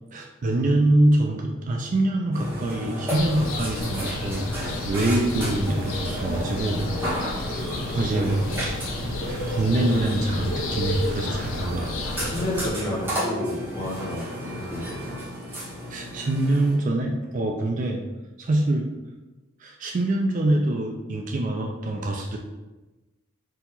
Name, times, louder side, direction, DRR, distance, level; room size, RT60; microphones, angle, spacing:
voice 1, 0.1-6.8 7.3-8.4 9.2-12.0 15.9-18.0 18.4-18.9 19.6-22.4, right 1 dB, 40° right, 2 dB, 0.4 m, -25 dB
Burping eructation, 2.3-16.7, equal, 10° right, 1.2 m, -32 dB
sound 1, 3.1-12.7, left 2 dB, 70° left, 0.6 m, -33 dB
voice 2, 6.7-7.3 12.2-14.8 15.1-15.2, left 1 dB, 25° left, -6 dB, 1.3 m, -31 dB
3.9 x 2.9 x 4.1 m, 1.1 s
head